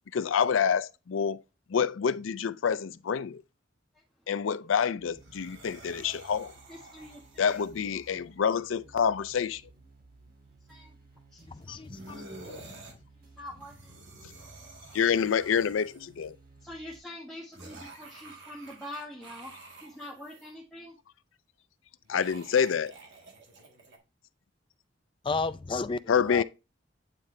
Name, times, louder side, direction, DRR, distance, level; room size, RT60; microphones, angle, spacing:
voice 1, 0.1-1.4 1.7-3.4 4.3-6.5 7.4-9.6 14.9-16.4 22.1-22.9 26.1-26.4, left 7 dB, 85° left, 0.4 m, -27 dB
voice 2, 3.9-4.3 6.7-7.7 10.7-11.0 11.3-11.9 13.1-14.8 16.6-21.0, left 1 dB, ahead, 1.4 m, -46 dB
sound 1, 5.0-17.0, right 3 dB, 50° right, 2.3 m, -57 dB
sound 2, 5.1-8.2 11.9-12.9 13.4-16.2 17.5-20.5 22.0-24.0, right 2 dB, 65° right, 1.8 m, -50 dB
voice 3, 11.5-12.8 25.2-26.0 26.3-26.4, left 4 dB, 25° left, 0.4 m, -33 dB
8.9 x 3.8 x 3.2 m
head